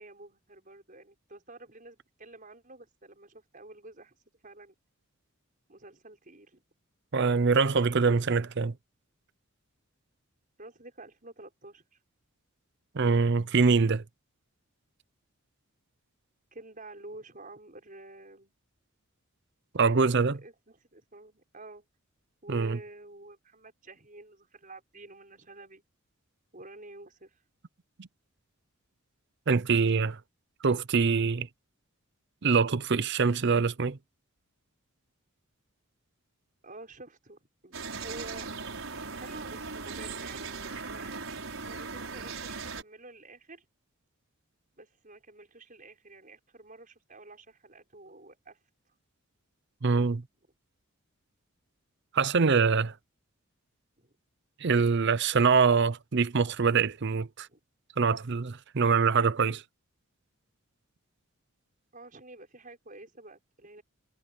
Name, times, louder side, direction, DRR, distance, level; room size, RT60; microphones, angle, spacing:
voice 1, 0.0-4.2 4.4-4.8 5.7-6.6 10.6-12.0 16.5-18.5 20.4-21.8 22.4-25.8 26.5-27.4 36.6-38.6 39.1-41.2 41.6-43.7 44.8-48.6 54.0-54.1 57.5-57.6 61.9-63.8, right 2 dB, 40° right, 6.3 m, -49 dB
voice 2, 7.1-8.7 12.9-14.0 19.7-20.4 22.5-22.8 28.0-28.1 29.5-30.2 30.6-31.5 32.4-34.0 49.8-50.2 52.1-52.9 54.6-57.5 58.0-59.6, right 5 dB, 55° right, 0.6 m, -24 dB
sound 1, 37.7-42.8, right 4 dB, 70° right, 6.1 m, -38 dB
head